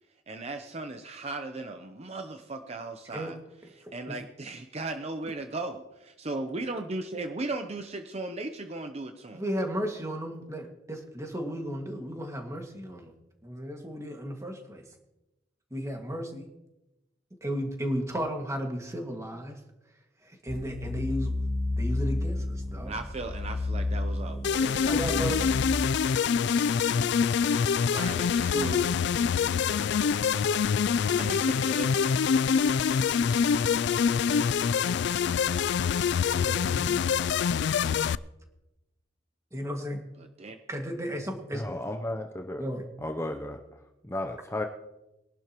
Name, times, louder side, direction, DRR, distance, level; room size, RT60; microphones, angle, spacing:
voice 1, 0.3-3.4 3.7-9.4 22.9-25.4 27.9-28.9 31.1-32.3 40.2-40.6, right 2 dB, 35° right, 6 dB, 0.7 m, -37 dB
voice 2, 9.3-13.1 13.4-14.8 15.7-16.5 17.4-19.6 20.2-21.3 21.8-22.9 24.8-25.4 36.0-37.1 37.9-38.0 39.5-40.0 40.7-41.6 42.6-42.8, equal, 15° right, 2 dB, 2.0 m, -34 dB
sound 1, 20.5-25.7, left 2 dB, 45° left, 1.3 m, -31 dB
sound 2, 24.4-38.2, left 6 dB, 65° left, 0.3 m, -25 dB
voice 3, 41.5-42.6 43.0-43.6 44.1-44.7, left 1 dB, 15° left, 5 dB, 0.6 m, -33 dB
22.0 x 11.5 x 3.0 m, 0.95 s
head